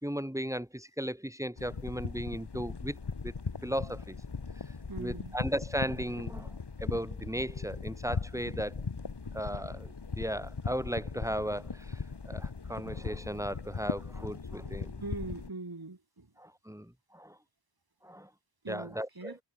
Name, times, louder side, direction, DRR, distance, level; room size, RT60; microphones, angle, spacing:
voice 1, 0.0-3.0 3.2-3.3 3.6-4.2 5.0-8.8 9.3-14.9 16.4-17.4 18.0-18.3 18.7-19.4, equal, 5° right, 3.1 m, -36 dB
sound 1, 1.6-15.5, left 4 dB, 60° left, 1.5 m, -39 dB
voice 2, 4.9-5.4 15.0-16.3 18.6-19.4, right 3 dB, 50° right, 3.6 m, -41 dB
wide cardioid pair, 40°, 45 cm